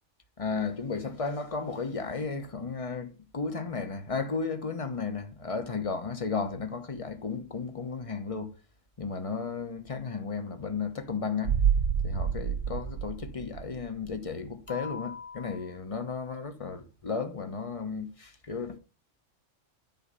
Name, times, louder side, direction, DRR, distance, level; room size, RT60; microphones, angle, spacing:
voice 1, 0.4-8.5 9.0-11.6 12.0-18.8, left 5 dB, 30° left, 1.0 m, -34 dB
sound 1, 11.4-14.1 14.4-14.5, right 7 dB, 60° right, 1.1 m, -28 dB
9.8 x 4.4 x 5.4 m
omnidirectional pair, 1.2 m